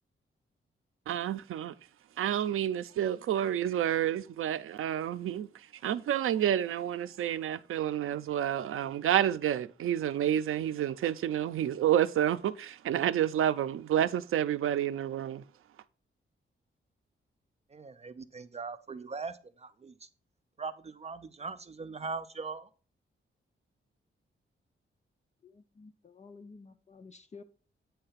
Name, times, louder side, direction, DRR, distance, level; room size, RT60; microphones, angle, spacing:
voice 1, 1.1-1.7 2.2-15.4, right 11 dB, 80° right, 0.5 m, -29 dB
voice 2, 17.7-20.1 20.6-22.7, right 4 dB, 30° right, 0.5 m, -40 dB
voice 3, 25.4-27.4, left 4 dB, 35° left, 0.5 m, -52 dB
8.7 x 3.3 x 5.6 m
wide cardioid pair, 130°, 21 cm